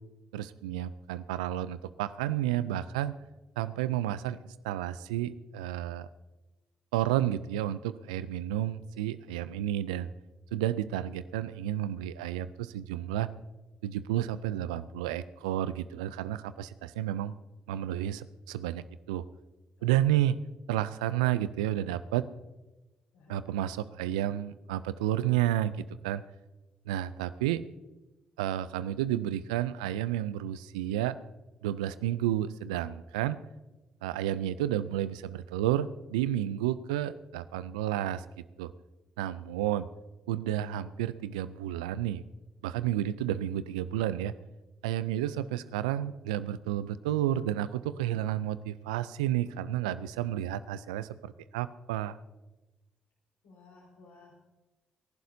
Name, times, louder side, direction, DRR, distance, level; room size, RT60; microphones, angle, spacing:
voice 1, 0.3-3.2 3.6-6.1 6.9-10.1 10.5-13.3 13.8-17.3 17.7-19.2 19.8-20.4 20.7-22.2 23.3-26.2 26.9-27.6 28.4-31.2 31.6-33.4 34.0-38.7 39.2-39.9 40.3-42.2 42.6-44.3 44.8-52.2, right 12 dB, 85° right, 15 dB, 0.4 m, -31 dB
voice 2, 53.4-54.4, left 3 dB, 80° left, -2 dB, 5.1 m, -55 dB
26.5 x 11.5 x 2.8 m, 1.1 s
hypercardioid pair, 40°, 4 cm